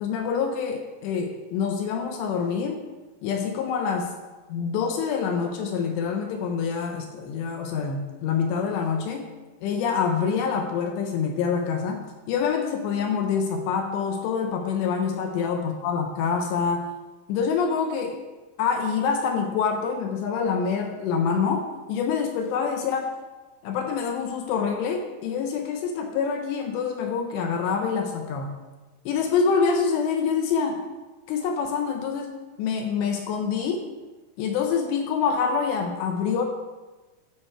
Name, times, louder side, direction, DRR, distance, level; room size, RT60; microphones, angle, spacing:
voice 1, 0.0-2.8 3.2-4.1 4.5-9.3 9.6-16.9 17.3-18.2 18.6-23.2 23.6-28.6 29.1-30.8 31.3-32.3 32.6-33.9 34.4-36.4, left 6 dB, 80° left, 4 dB, 2.6 m, -26 dB
12.5 x 5.1 x 4.4 m, 1.2 s
omnidirectional pair, 5.6 m